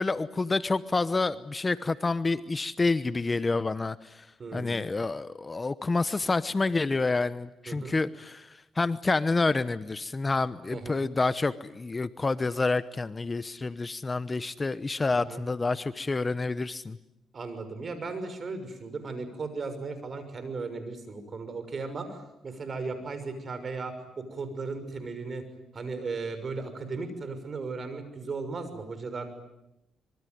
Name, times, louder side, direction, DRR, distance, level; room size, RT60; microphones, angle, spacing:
voice 1, 0.0-4.3 4.5-17.0, left 3 dB, 25° left, 14 dB, 0.9 m, -28 dB
voice 2, 4.4-4.9 7.7-8.0 10.7-11.0 15.2-15.4 17.3-25.4 25.7-29.3, right 4 dB, 40° right, 10 dB, 6.2 m, -36 dB
26.0 x 23.5 x 9.4 m, 0.89 s
cardioid pair, 90°, 0 cm